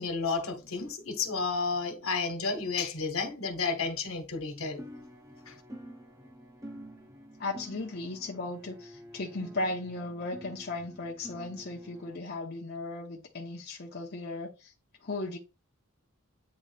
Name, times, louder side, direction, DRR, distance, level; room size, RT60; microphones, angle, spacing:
voice 1, 0.0-4.8 5.5-5.6, left 4 dB, 75° left, 1.4 m, -32 dB
sound 1, 4.8-12.2, equal, 15° right, 0.8 m, -48 dB
voice 2, 7.4-14.7 15.0-15.4, left 2 dB, 45° left, 0.9 m, -36 dB
8.7 x 3.3 x 3.3 m
head